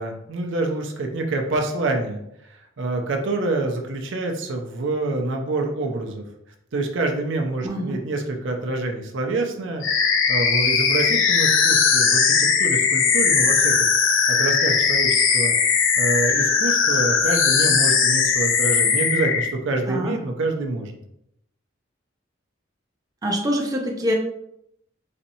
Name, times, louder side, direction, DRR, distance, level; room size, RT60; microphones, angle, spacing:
voice 1, 0.0-2.2 2.5-6.2 6.7-13.9 14.3-21.0, right 2 dB, 65° right, 2 dB, 0.5 m, -26 dB
voice 2, 7.6-8.0 19.9-20.1 23.2-24.1, equal, 20° right, -1 dB, 0.5 m, -25 dB
sound 1, 9.8-19.5, left 6 dB, 75° left, 0.5 m, -19 dB
4.1 x 2.8 x 2.6 m, 0.78 s
head